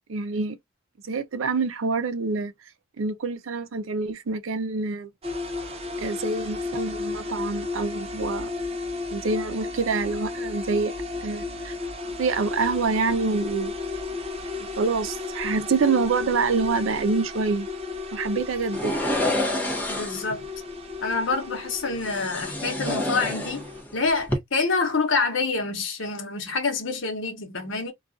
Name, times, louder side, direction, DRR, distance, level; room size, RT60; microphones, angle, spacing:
voice 1, 0.1-0.6 1.0-2.5 3.0-5.1 6.0-8.5 9.1-10.9 11.2-11.7 12.2-13.7 14.6-17.7 18.1-18.9, right 4 dB, 85° right, 0.5 m, -26 dB
sound 1, 5.2-23.8, left 3 dB, 30° right, 0.5 m, -33 dB
sound 2, 18.7-20.4 22.0-23.9 24.2-24.4, left 1 dB, 10° left, 0.7 m, -28 dB
voice 2, 19.9-20.5 21.0-23.7 23.9-27.9, left 4 dB, 70° left, 0.9 m, -27 dB
2.4 x 2.3 x 2.4 m
head